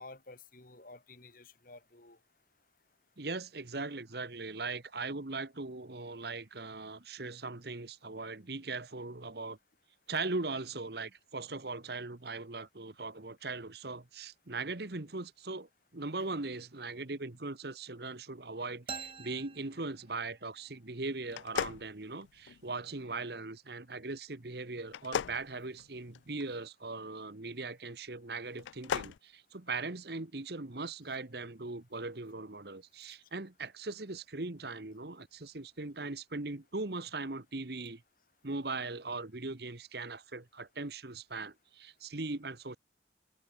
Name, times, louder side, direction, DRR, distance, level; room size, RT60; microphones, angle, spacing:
voice 1, 0.0-2.2 16.2-16.3, left 2 dB, 50° left, 2.5 m, -52 dB
voice 2, 3.2-9.6 10.1-38.0 38.4-42.8, right 3 dB, 55° right, 1.3 m, -40 dB
sound 1, 18.9-20.6, right 6 dB, 30° right, 2.2 m, -45 dB
sound 2, 21.3-22.7 24.9-26.5 28.5-29.2, left 8 dB, 75° left, 0.3 m, -37 dB
head